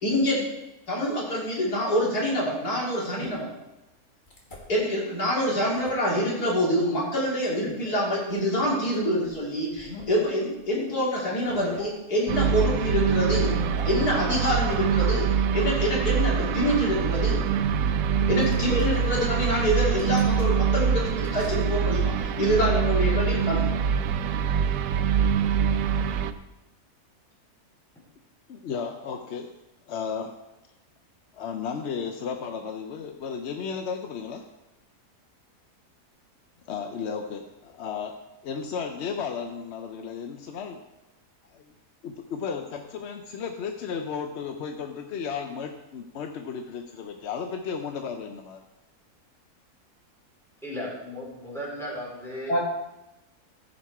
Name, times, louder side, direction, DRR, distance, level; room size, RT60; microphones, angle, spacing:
voice 1, 0.0-0.5 0.9-3.5 4.7-13.5 13.9-15.3 15.5-17.4 18.3-23.6 52.5-52.6, equal, 85° left, -5 dB, 3.5 m, -26 dB
sound 1, 3.2-3.3 4.3-4.6 5.5-5.9 7.5-7.9 9.2-9.3 9.7-10.1 10.6-10.7 11.4-11.9 13.4-13.9 14.4-14.5 16.4-16.7 18.4-19.2 20.0-20.7 21.2-21.7, left 2 dB, 30° left, 2.1 m, -39 dB
sound 2, 12.3-26.3, right 7 dB, 90° right, 1.2 m, -24 dB
voice 2, 28.5-29.5 29.9-30.3 31.3-34.4 36.7-38.1 38.4-40.8 41.5-41.7 42.0-48.6, left 6 dB, 60° left, 5 dB, 0.8 m, -34 dB
voice 3, 50.6-52.6, equal, ahead, -6 dB, 3.5 m, -35 dB
15.0 x 5.4 x 4.6 m, 0.98 s
omnidirectional pair, 1.6 m